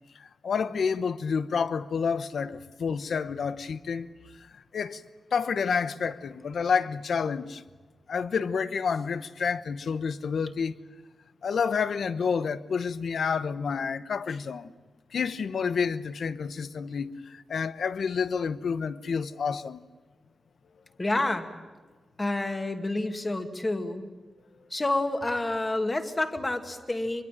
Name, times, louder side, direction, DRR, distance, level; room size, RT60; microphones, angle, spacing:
voice 1, 0.1-4.1 4.4-5.0 5.3-7.6 8.1-10.7 11.4-14.7 15.1-19.8, left 6 dB, 65° left, 1.0 m, -29 dB
voice 2, 21.0-21.5 22.2-24.1 24.7-27.2, left 2 dB, 20° left, 2.1 m, -28 dB
24.0 x 23.0 x 9.1 m
wide cardioid pair, 140°, 0 cm